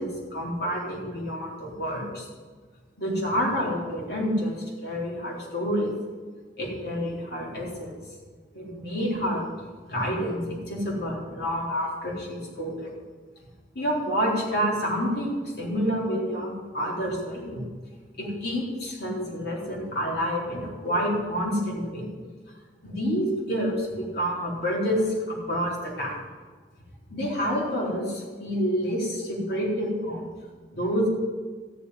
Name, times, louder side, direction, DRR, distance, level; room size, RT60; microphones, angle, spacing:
voice 1, 0.0-2.3 3.0-4.6 4.8-5.9 6.6-7.9 8.5-9.5 9.9-12.9 13.7-17.7 18.2-22.1 22.8-26.1 27.1-30.3 30.7-31.1, equal, 65° left, -3 dB, 4.0 m, -28 dB
14.0 x 7.1 x 9.7 m, 1.5 s
head